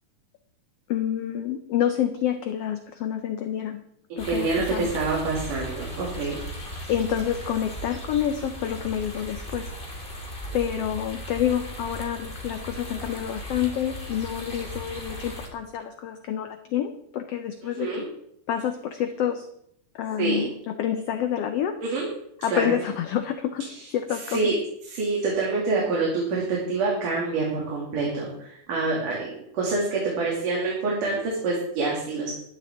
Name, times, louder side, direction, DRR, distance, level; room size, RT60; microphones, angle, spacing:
voice 1, 0.9-3.8 4.2-4.9 6.9-9.7 10.5-18.0 18.5-19.5 19.9-21.8 22.4-23.7 23.9-24.5, left 10 dB, 75° left, 8 dB, 1.5 m, -28 dB
voice 2, 4.1-6.4 17.8-18.0 20.2-20.4 21.8-22.1 22.5-22.7 23.7-23.8 24.1-24.5 24.9-32.3, right 3 dB, 80° right, -4 dB, 4.2 m, -26 dB
sound 1, 4.2-15.5, equal, 15° left, 2.3 m, -37 dB
15.5 x 12.0 x 3.7 m, 0.72 s
omnidirectional pair, 3.6 m